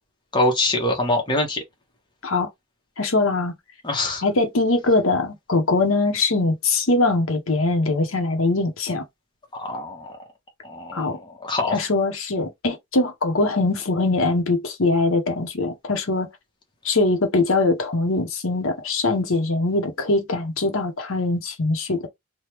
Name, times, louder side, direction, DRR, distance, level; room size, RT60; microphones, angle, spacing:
voice 1, 0.3-1.6 3.8-4.2 9.5-10.1 10.6-11.8, left 2 dB, 20° left, 1.0 m, -24 dB
voice 2, 3.0-3.5 4.2-9.0 10.9-11.2 11.7-16.3 16.8-22.0, left 3 dB, 85° left, 0.9 m, -22 dB
3.4 x 2.3 x 2.9 m
head